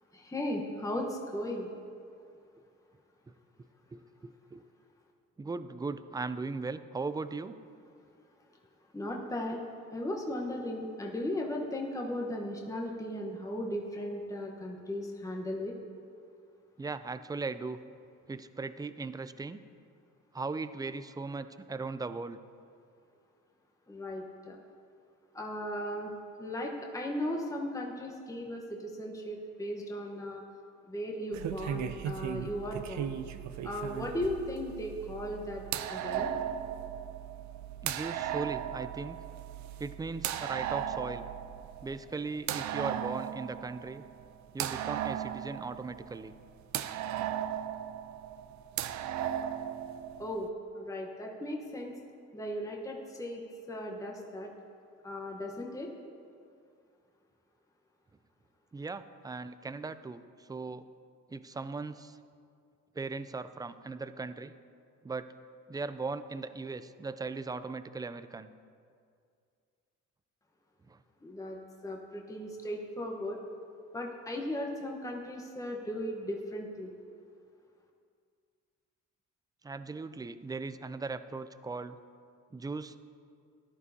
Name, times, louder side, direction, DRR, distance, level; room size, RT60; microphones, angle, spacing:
voice 1, 0.1-1.7 8.9-9.6 9.9-15.8 23.9-24.6 25.3-26.1 26.4-30.4 30.9-33.1 33.6-35.6 35.9-36.3 50.2-50.5 50.7-51.9 52.3-54.5 55.0-55.9 71.2-73.4 73.9-76.9, left 1 dB, 10° left, 0 dB, 1.1 m, -37 dB
voice 2, 3.9-4.6 5.4-7.6 16.8-17.8 18.3-19.6 20.3-22.4 37.8-39.2 39.8-41.2 41.8-44.0 44.5-46.3 58.7-60.8 61.3-62.2 63.0-64.5 65.0-65.3 65.7-68.5 70.9-71.0 79.6-82.0 82.5-83.0, right 4 dB, 15° right, 12 dB, 0.3 m, -38 dB
sound 1, 31.3-50.5, right 10 dB, 70° right, 0.5 m, -37 dB
13.5 x 11.0 x 2.8 m, 2.3 s
cardioid pair, 90°, 30 cm